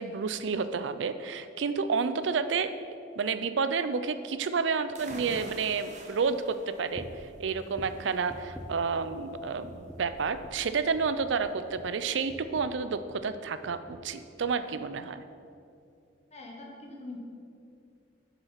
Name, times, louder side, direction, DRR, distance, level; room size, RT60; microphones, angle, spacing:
voice 1, 0.0-2.7 3.2-7.0 7.4-15.2, right 5 dB, 80° right, 11 dB, 0.5 m, -30 dB
sound 1, 4.9-12.4, right 1 dB, 40° right, 1.0 m, -49 dB
sound 2, 6.9-7.3 7.7-9.4 9.6-10.2 10.4-10.7 11.0-13.3 13.6-14.1 14.4-14.6 15.0-15.1, equal, ahead, 0.5 m, -47 dB
voice 2, 16.3-17.2, left 2 dB, 35° left, 0 dB, 1.3 m, -43 dB
7.1 x 6.8 x 5.7 m, 2.5 s
head